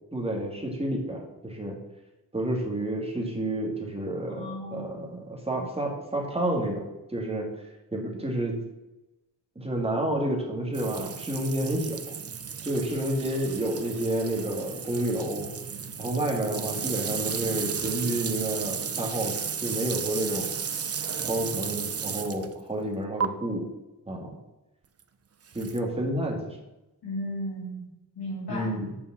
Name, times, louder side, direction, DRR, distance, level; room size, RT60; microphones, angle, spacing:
voice 1, 0.1-1.8 2.3-7.5 7.9-8.6 9.6-12.1 12.6-15.5 16.0-20.5 21.2-23.7 24.1-24.4 25.5-26.6 28.5-29.0, right 1 dB, 15° right, 0 dB, 1.9 m, -30 dB
voice 2, 4.3-5.2 5.5-5.6 27.0-27.8 28.2-28.7, equal, 75° left, -7 dB, 2.4 m, -35 dB
sound 1, 10.7-22.5 23.2-23.3 25.5-25.8, right 7 dB, 40° right, 0.6 m, -34 dB
7.0 x 5.3 x 7.3 m, 0.99 s
wide cardioid pair, 130°, 39 cm